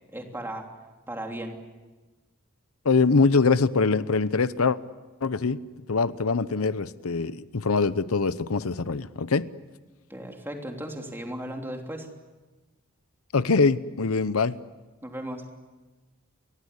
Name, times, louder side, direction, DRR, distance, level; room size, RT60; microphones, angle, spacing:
voice 1, 0.1-0.6 1.1-1.6 10.1-12.1 15.0-15.4, right 1 dB, 10° right, 2 dB, 3.2 m, -36 dB
voice 2, 2.8-4.8 5.2-5.6 5.9-9.5 13.3-14.6, left 4 dB, 85° left, 15 dB, 0.8 m, -23 dB
30.0 x 23.0 x 8.2 m, 1.2 s
head